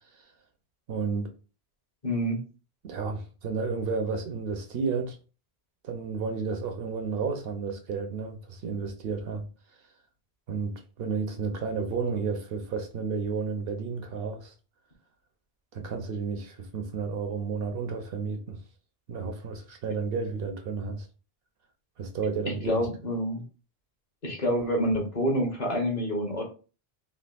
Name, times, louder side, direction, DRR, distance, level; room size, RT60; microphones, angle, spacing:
voice 1, 0.9-1.3 2.8-5.2 5.8-9.4 10.5-14.5 15.7-18.6 19.1-21.1 22.0-22.9, right 5 dB, 70° right, 0.7 m, -32 dB
voice 2, 2.0-2.4 22.5-23.4 24.2-26.4, equal, 45° left, 1.0 m, -27 dB
3.4 x 2.3 x 2.3 m
omnidirectional pair, 1.1 m